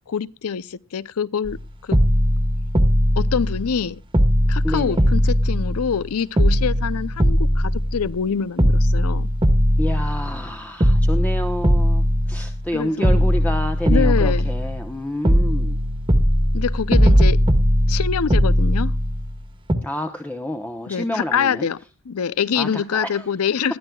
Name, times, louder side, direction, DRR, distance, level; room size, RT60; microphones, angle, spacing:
voice 1, 0.1-2.0 3.2-4.0 4.5-9.3 12.7-13.3 13.9-14.5 16.5-17.4 17.9-18.9 20.9-21.8 22.1-23.8, left 6 dB, 75° left, 0.5 m, -25 dB
sound 1, 1.5-1.6 1.9-3.8 4.1-6.1 6.4-8.2 8.6-10.5 10.8-12.7 13.0-14.9 15.2-19.4 19.7-19.8, equal, 25° right, 1.4 m, -19 dB
voice 2, 4.6-5.1 9.8-15.8 19.8-21.7 22.5-23.3, left 1 dB, 5° left, 0.8 m, -29 dB
20.5 x 12.5 x 2.3 m
head